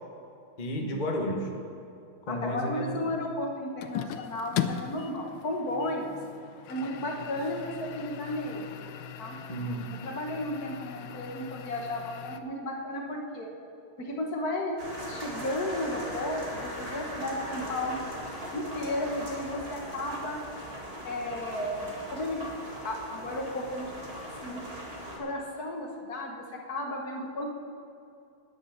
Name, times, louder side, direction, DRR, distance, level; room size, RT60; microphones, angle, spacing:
voice 1, 0.6-1.5 2.3-3.0 9.5-9.9, equal, 30° left, 0 dB, 1.1 m, -32 dB
voice 2, 2.3-6.2 6.7-8.7 9.2-9.4 10.0-13.5 14.0-14.8 15.1-18.0 18.5-20.4 21.0-23.9 24.4-24.6 25.1-27.5, left 1 dB, 50° left, 1 dB, 1.6 m, -34 dB
sound 1, 3.8-12.4, left 9 dB, 80° left, 1.5 m, -39 dB
sound 2, 14.8-25.2, equal, 30° right, 2.1 m, -39 dB
10.0 x 9.8 x 7.2 m, 2.6 s
omnidirectional pair, 2.3 m